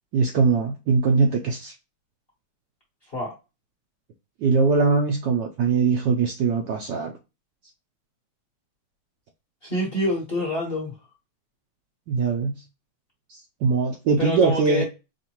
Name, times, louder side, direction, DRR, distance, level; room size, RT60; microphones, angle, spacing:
voice 1, 0.1-1.7 4.4-7.1 12.1-12.6 13.3-14.8, right 4 dB, 70° right, 1.1 m, -21 dB
voice 2, 9.6-10.9 14.2-14.8, left 1 dB, 35° left, 1.1 m, -27 dB
5.4 x 2.5 x 2.9 m
omnidirectional pair, 2.3 m